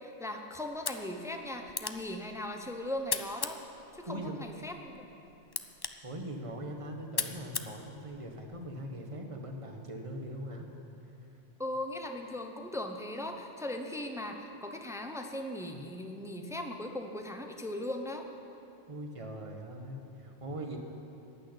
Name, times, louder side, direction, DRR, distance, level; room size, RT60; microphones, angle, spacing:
voice 1, 0.0-3.6 3.9-5.1 11.6-18.2, left 1 dB, 5° right, 4 dB, 0.7 m, -38 dB
sound 1, 0.7-8.7, left 5 dB, 40° left, 0.3 m, -41 dB
voice 2, 4.1-4.4 6.0-10.6 18.9-20.8, right 1 dB, 30° right, 3 dB, 1.3 m, -41 dB
14.5 x 6.6 x 9.8 m, 2.9 s
omnidirectional pair, 1.2 m